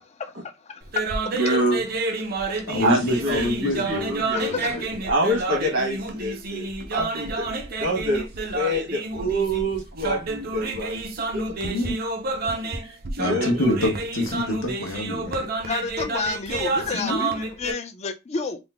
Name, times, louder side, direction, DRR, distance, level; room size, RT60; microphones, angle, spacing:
voice 1, 0.7-1.0 2.5-2.6 4.3-4.9 12.6-12.7 15.6-18.6, left 4 dB, 30° left, 0.4 m, -30 dB
sound 1, 0.8-17.7, right 3 dB, 45° right, 0.5 m, -29 dB
voice 2, 1.3-1.9 2.8-7.5 7.8-8.3 8.5-11.1 11.3-11.5 12.8-13.7, right 1 dB, 75° right, 1.4 m, -26 dB
voice 3, 2.7-4.1 4.4-4.8 11.6-11.9 13.2-15.5 16.9-17.2, left 1 dB, 75° left, 1.0 m, -26 dB
3.7 x 2.0 x 3.4 m
head